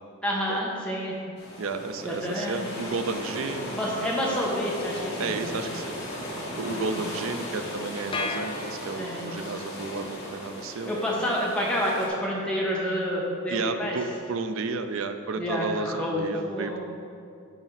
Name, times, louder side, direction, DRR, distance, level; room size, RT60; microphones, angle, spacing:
voice 1, 0.2-1.2 2.0-2.7 3.7-5.6 6.7-6.9 9.0-9.3 10.8-14.0 15.4-16.8, equal, 5° left, -5 dB, 1.3 m, -29 dB
sound 1, 1.4-12.1, left 1 dB, 55° left, 1.8 m, -37 dB
voice 2, 1.6-3.8 5.2-6.0 6.6-11.0 13.5-16.8, right 3 dB, 70° right, 8 dB, 0.5 m, -32 dB
sound 2, 8.1-9.5, left 3 dB, 25° left, 0.5 m, -34 dB
10.5 x 5.0 x 4.1 m, 2.5 s
head